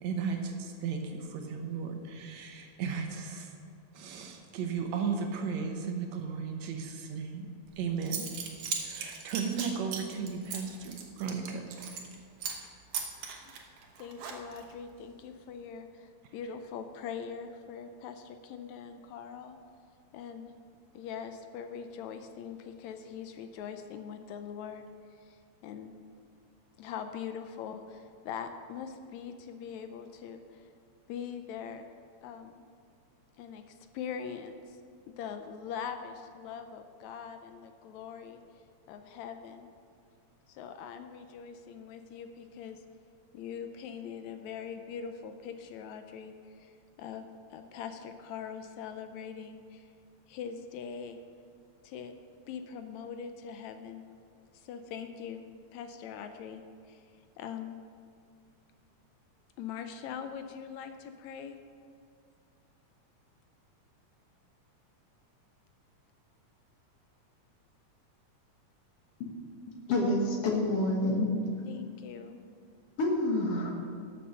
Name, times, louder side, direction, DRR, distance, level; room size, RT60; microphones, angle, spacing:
voice 1, 0.0-3.5 3.9-7.5 7.8-8.2 8.6-11.9, right 5 dB, 70° right, 4 dB, 2.2 m, -35 dB
Zipper (clothing) / Coin (dropping), 7.7-7.8 8.0-12.1 12.4-12.7 12.9-14.7, right 7 dB, 85° right, 2.7 m, -38 dB
voice 2, 14.0-19.6 20.1-20.5 20.9-24.8 25.3-25.9 26.8-30.6 31.1-31.9 32.2-32.6 33.4-34.8 35.1-38.4 38.9-39.7 40.5-42.8 43.3-46.7 47.0-49.9 50.3-51.2 51.8-52.1 52.5-54.1 54.5-55.4 55.7-57.0 57.4-57.8 59.6-61.6 71.7-72.4, left 7 dB, 80° left, 8 dB, 1.9 m, -42 dB
voice 3, 69.9-71.4 73.0-73.7, left 1 dB, 60° left, 0 dB, 2.1 m, -28 dB
12.0 x 6.8 x 6.3 m, 2.3 s
omnidirectional pair, 3.4 m